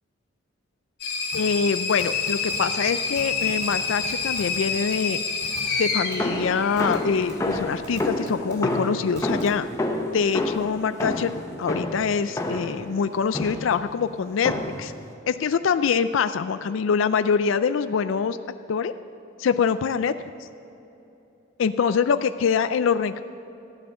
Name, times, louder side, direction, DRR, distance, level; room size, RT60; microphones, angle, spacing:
sound 1, 1.0-7.4, left 4 dB, 55° left, 2.7 m, -28 dB
voice 1, 1.3-5.2 5.8-9.7 10.1-14.5 14.8-14.9 15.3-18.4 18.7-18.9 19.4-20.1 20.4-20.5 21.6-23.2, left 6 dB, 70° left, 12 dB, 0.4 m, -24 dB
sound 2, 1.3-1.4 2.0-2.6 2.9-3.0 3.2-3.8 4.0-4.6 4.9-5.0 5.4-5.6 6.1-6.2 6.8-7.0 7.3-7.4 7.8-8.5 9.2-9.5, right 2 dB, 55° right, 2.7 m, -41 dB
sound 3, 6.2-12.8 13.3-13.8 14.4-14.9, left 1 dB, 15° left, 0.9 m, -29 dB
14.5 x 9.3 x 6.7 m, 3.0 s
head